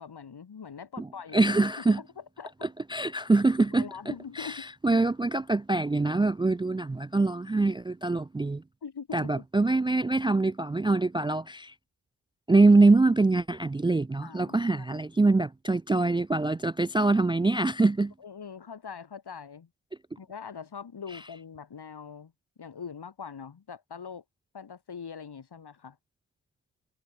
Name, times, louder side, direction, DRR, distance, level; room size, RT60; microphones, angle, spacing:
voice 1, 0.0-1.5 1.9-2.1 2.4-2.7 3.8-4.7 8.8-9.4 14.2-15.0 18.2-19.7 20.2-22.3 22.6-24.2 24.5-26.0, left 6 dB, 65° left, 5.8 m, -42 dB
voice 2, 1.3-2.0 2.6-8.6 9.1-11.7 12.5-18.1, right 3 dB, 10° right, 0.4 m, -24 dB
cardioid pair, 70°, 43 cm